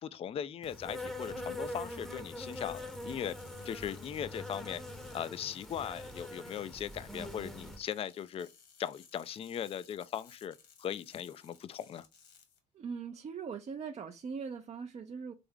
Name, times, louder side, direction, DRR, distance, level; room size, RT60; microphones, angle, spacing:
voice 1, 0.0-3.4 3.6-4.8 5.1-8.5 8.8-12.1, left 9 dB, 30° left, 0.4 m, -39 dB
Insect, 0.6-7.8, left 1 dB, ahead, 0.8 m, -43 dB
sound 1, 2.3-12.6, left 7 dB, 65° left, 1.4 m, -61 dB
voice 2, 12.7-15.3, right 6 dB, 35° right, 0.5 m, -41 dB
3.4 x 3.4 x 3.6 m
hypercardioid pair, 60°, 19 cm